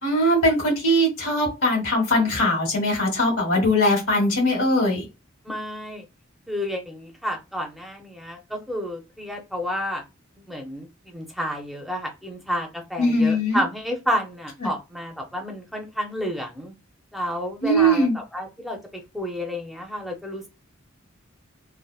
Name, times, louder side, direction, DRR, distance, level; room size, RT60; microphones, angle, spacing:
voice 1, 0.0-5.0 13.0-13.6 14.6-14.7 17.6-18.2, equal, 75° left, 0 dB, 1.5 m, -21 dB
voice 2, 5.5-6.0 6.5-10.0 10.5-16.7 17.1-20.5, equal, ahead, 2 dB, 0.6 m, -30 dB
3.3 x 2.1 x 2.3 m, 0.26 s
head